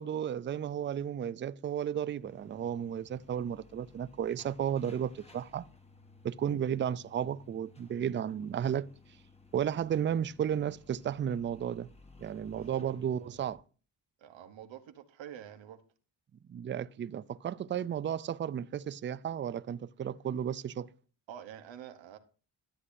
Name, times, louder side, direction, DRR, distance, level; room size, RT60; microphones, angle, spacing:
voice 1, 0.0-5.6 6.2-8.9 9.5-11.9 12.2-13.6 16.5-20.9, right 9 dB, 30° right, 0.3 m, -33 dB
sound 1, 2.1-13.6, left 3 dB, 15° left, 1.4 m, -58 dB
voice 2, 12.5-12.9 14.2-15.8 21.3-22.2, right 10 dB, 85° right, 1.0 m, -47 dB
12.5 x 8.1 x 2.6 m
cardioid pair, 70°, 44 cm